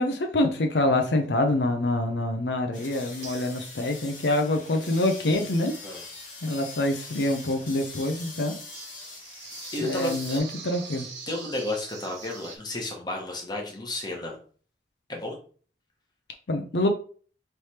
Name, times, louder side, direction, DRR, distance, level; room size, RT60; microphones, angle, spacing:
voice 1, 0.0-5.7 6.4-8.5 9.8-11.1 16.5-16.9, left 1 dB, 75° left, 5 dB, 0.6 m, -26 dB
sound 1, 2.7-10.4, left 3 dB, 50° left, 1.5 m, -43 dB
sound 2, 2.8-2.9 3.2-3.9 8.7-12.6, right 5 dB, 90° right, 1.1 m, -43 dB
voice 2, 9.7-10.4 11.3-14.4 15.1-15.4, left 2 dB, 25° left, 0 dB, 1.0 m, -32 dB
3.3 x 3.2 x 4.3 m, 0.43 s
head